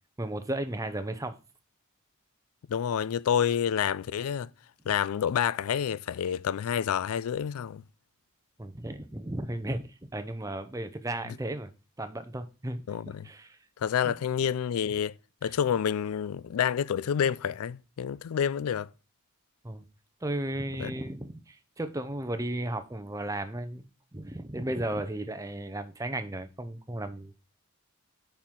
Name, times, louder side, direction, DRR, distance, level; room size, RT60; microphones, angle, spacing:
voice 1, 0.2-1.4 8.6-11.7 12.0-13.6 14.0-14.1 19.6-19.8 20.2-27.3, right 1 dB, 15° right, 0.6 m, -35 dB
voice 2, 2.7-4.5 4.9-7.8 12.9-13.3 13.8-15.1 15.4-18.9 20.8-20.9, left 8 dB, 75° left, 0.3 m, -28 dB
9.3 x 4.5 x 3.7 m
head